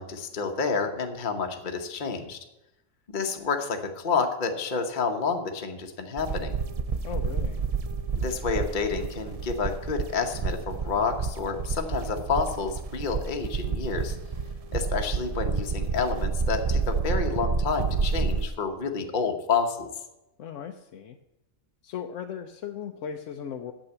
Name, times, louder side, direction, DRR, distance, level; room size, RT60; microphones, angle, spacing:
voice 1, 0.0-2.4 3.1-6.5 8.1-14.2 14.7-19.9, left 5 dB, 40° left, 4 dB, 1.1 m, -29 dB
sound 1, 6.2-18.5, right 4 dB, 65° right, 0.3 m, -29 dB
voice 2, 7.0-7.6 20.4-21.2 21.8-23.7, left 8 dB, 70° left, 5 dB, 1.0 m, -37 dB
8.7 x 7.5 x 7.9 m, 0.94 s
omnidirectional pair, 1.4 m